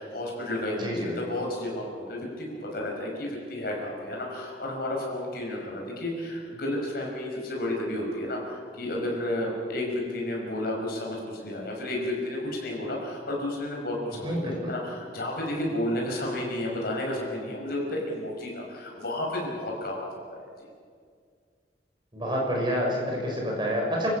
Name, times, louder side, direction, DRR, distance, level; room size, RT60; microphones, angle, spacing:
voice 1, 0.0-20.7, left 1 dB, 55° left, -1 dB, 5.9 m, -32 dB
voice 2, 0.7-1.2 14.2-14.7 22.1-24.1, equal, 25° right, -1 dB, 6.4 m, -28 dB
26.5 x 15.0 x 8.7 m, 2.1 s
head